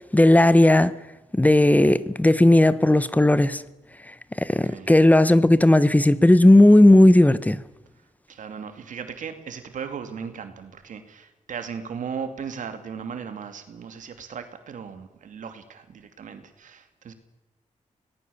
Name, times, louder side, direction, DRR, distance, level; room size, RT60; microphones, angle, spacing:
voice 1, 0.1-0.9 1.3-3.6 4.4-7.6, left 1 dB, 10° left, 1.0 m, -15 dB
voice 2, 4.5-4.9 8.0-17.1, right 6 dB, 90° right, 2.6 m, -37 dB
25.0 x 19.0 x 7.1 m
wide cardioid pair, 95°, 13 cm